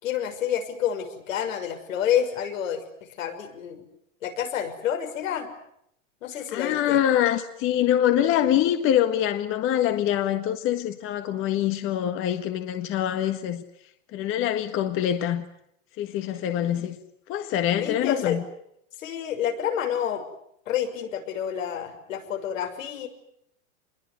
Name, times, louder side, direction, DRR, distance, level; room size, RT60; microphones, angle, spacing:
voice 1, 0.0-3.8 4.2-5.5 6.2-7.0 17.8-18.4 19.0-20.2 20.7-23.1, left 9 dB, 80° left, 6.2 m, -29 dB
voice 2, 6.5-13.6 14.1-15.5 16.0-17.0 17.3-18.4, left 11 dB, 30° left, 1.6 m, -24 dB
27.0 x 22.0 x 9.5 m
supercardioid pair, 145°, 38 cm